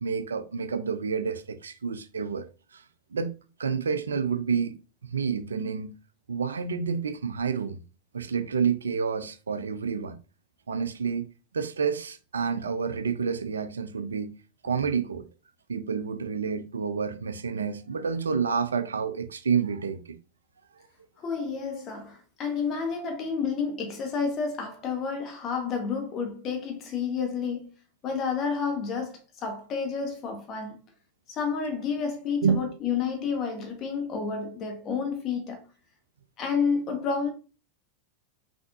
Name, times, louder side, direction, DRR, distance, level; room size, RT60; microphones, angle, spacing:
voice 1, 0.0-2.5 2.7-2.8 3.1-3.3 3.6-4.8 5.0-5.9 6.3-7.8 8.1-10.2 10.7-11.3 11.5-14.3 14.6-15.3 15.7-20.2 32.4-32.7, right 6 dB, 70° right, 0.5 m, -29 dB
voice 2, 21.2-27.7 28.0-30.8 31.3-35.6 36.4-37.3, left 5 dB, 30° left, 1.4 m, -30 dB
5.8 x 3.4 x 2.6 m
figure-of-eight pair, 90°, 0 cm